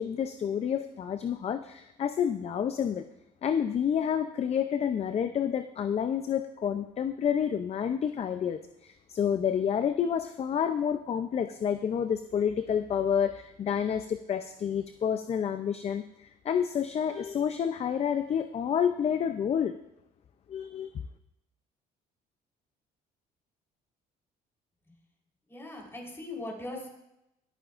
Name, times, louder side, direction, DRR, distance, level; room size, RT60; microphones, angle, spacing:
voice 1, 0.0-3.1 3.4-19.8 20.5-20.9, left 8 dB, 40° left, 9 dB, 0.5 m, -29 dB
voice 2, 25.5-26.9, left 2 dB, 15° left, -1 dB, 3.9 m, -39 dB
23.5 x 8.6 x 2.5 m, 0.86 s
cardioid pair, 110°, 17 cm